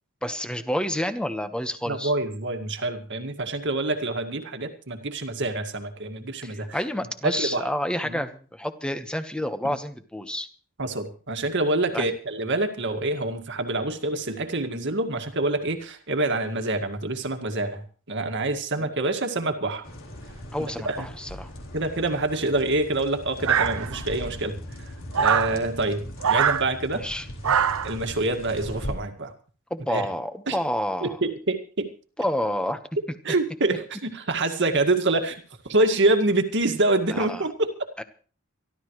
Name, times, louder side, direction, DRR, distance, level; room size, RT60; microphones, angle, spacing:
voice 1, 0.2-2.1 6.4-10.5 11.9-12.1 18.8-18.9 20.5-21.5 26.9-27.3 29.7-31.2 32.2-32.8 37.1-37.4 38.0-38.1, left 1 dB, 5° left, 9 dB, 1.2 m, -29 dB
voice 2, 1.9-6.8 7.2-7.6 8.0-8.2 9.6-9.7 10.8-19.8 20.6-21.1 21.7-27.1 27.8-29.3 29.9-30.0 30.5-30.6 31.0-31.9 33.2-37.9, right 2 dB, 60° right, 6 dB, 2.0 m, -26 dB
sound 1, 19.8-28.9, equal, 70° left, 3.7 m, -39 dB
sound 2, 23.4-24.2 25.1-25.5 26.2-26.6 27.4-27.9, right 7 dB, 75° right, 0.7 m, -22 dB
26.0 x 12.5 x 3.2 m, 0.40 s
head